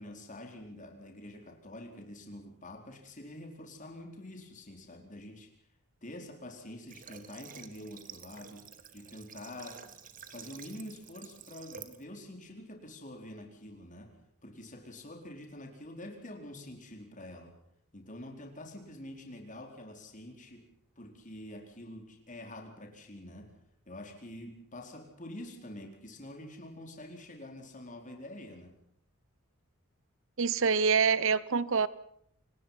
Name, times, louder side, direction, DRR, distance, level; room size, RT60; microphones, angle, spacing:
voice 1, 0.0-5.5 6.0-8.7 8.9-9.8 10.3-14.2 14.4-17.5 17.9-20.7 21.0-23.5 23.9-28.8, left 1 dB, 35° left, 4.4 m, -46 dB
Water / Water tap faucet, 6.9-12.0, right 7 dB, 40° right, 1.7 m, -50 dB
voice 2, 30.4-31.9, right 5 dB, 60° right, 0.9 m, -26 dB
28.5 x 19.5 x 5.8 m
head